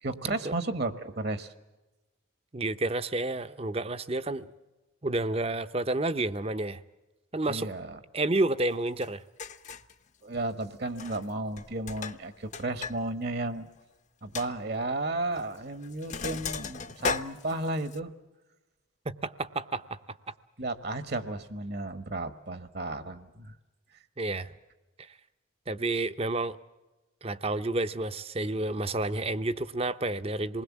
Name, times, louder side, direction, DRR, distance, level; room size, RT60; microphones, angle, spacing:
voice 1, 0.0-1.5 7.5-8.0 10.2-13.7 14.2-18.1 20.6-23.5, right 2 dB, 50° right, 1.2 m, -33 dB
voice 2, 2.5-4.5 5.0-6.8 7.3-7.7 8.1-9.2 19.1-20.0 24.2-24.5 25.0-25.1 25.7-26.6 27.2-30.6, right 2 dB, 30° right, 0.7 m, -30 dB
Sink (filling or washing), 9.0-9.1 9.4-9.9 10.9-11.3 11.6-13.0 13.3-13.4 13.8-13.9 14.3-14.5 15.4-15.6 15.8-18.0, left 4 dB, 35° left, 0.8 m, -36 dB
27.5 x 20.5 x 7.3 m
head